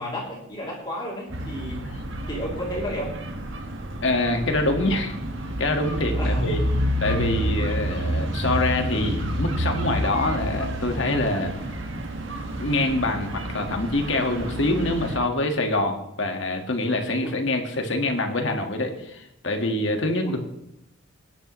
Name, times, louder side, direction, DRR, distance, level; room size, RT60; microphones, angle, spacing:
voice 1, 0.0-1.9 2.3-3.2 6.1-6.7 17.2-17.3 20.2-20.4, left 1 dB, 20° left, -4 dB, 3.1 m, -32 dB
sound 1, 1.3-15.2, right 1 dB, 65° right, 1.7 m, -29 dB
voice 2, 4.0-5.2 5.6-6.6 7.0-11.5 12.6-20.4, left 2 dB, 65° left, 4 dB, 1.7 m, -25 dB
21.5 x 10.0 x 3.2 m, 0.81 s
head